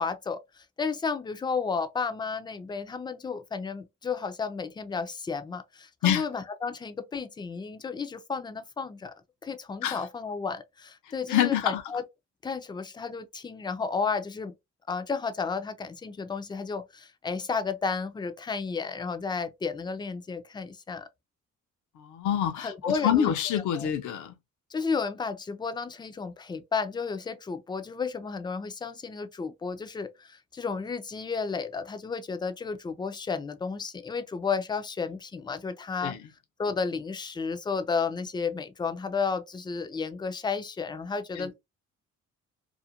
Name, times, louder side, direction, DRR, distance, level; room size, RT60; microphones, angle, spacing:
voice 1, 0.0-9.1 9.4-12.0 12.4-14.5 14.9-21.1 22.6-23.9 24.7-36.2 36.6-41.5, left 5 dB, 15° left, 0.4 m, -32 dB
voice 2, 11.3-11.8 22.0-24.3 36.0-36.2 41.4-41.5, left 10 dB, 75° left, 0.6 m, -26 dB
2.5 x 2.1 x 2.7 m
cardioid pair, 90°, 30 cm